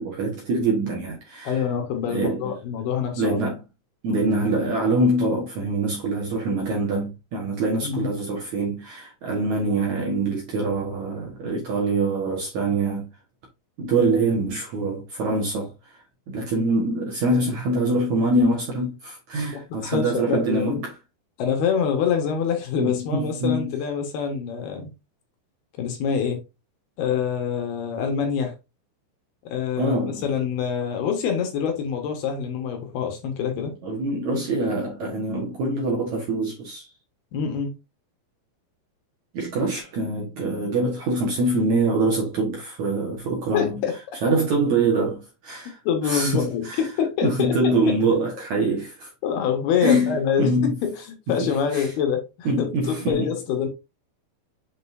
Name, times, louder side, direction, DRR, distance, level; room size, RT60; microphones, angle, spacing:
voice 1, 0.0-1.6 2.1-2.5 3.2-3.6 4.0-13.1 13.8-16.0 16.3-20.9 22.8-23.7 29.8-30.2 33.8-36.9 39.3-43.8 44.2-45.8 46.0-46.9 47.2-49.1 49.8-50.7 51.3-51.9 52.5-53.3, right 2 dB, 60° right, 2.1 m, -24 dB
voice 2, 1.4-3.4 7.8-8.1 19.7-20.8 21.4-24.9 25.8-26.4 27.0-28.5 29.5-33.7 37.3-37.7 43.5-43.9 45.8-47.7 49.2-53.7, left 7 dB, 70° left, 3.2 m, -25 dB
7.4 x 5.3 x 2.6 m
omnidirectional pair, 5.1 m